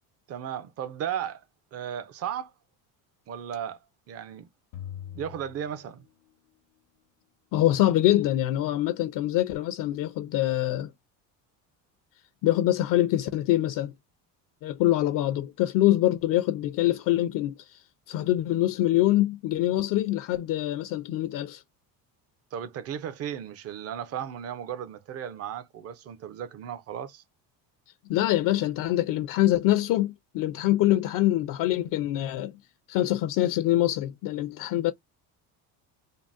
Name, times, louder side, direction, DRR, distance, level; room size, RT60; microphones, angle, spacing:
voice 1, 0.3-1.4 1.7-2.5 3.3-3.8 4.1-4.5 5.1-6.1 22.5-27.2, right 9 dB, 40° right, 0.6 m, -35 dB
sound 1, 4.7-6.5, left 10 dB, 80° left, 0.9 m, -43 dB
voice 2, 7.5-10.9 12.4-13.9 14.6-21.6 28.1-32.6 32.9-34.9, left 14 dB, 60° left, 0.5 m, -24 dB
3.6 x 2.1 x 2.4 m
cardioid pair, 130°, 38 cm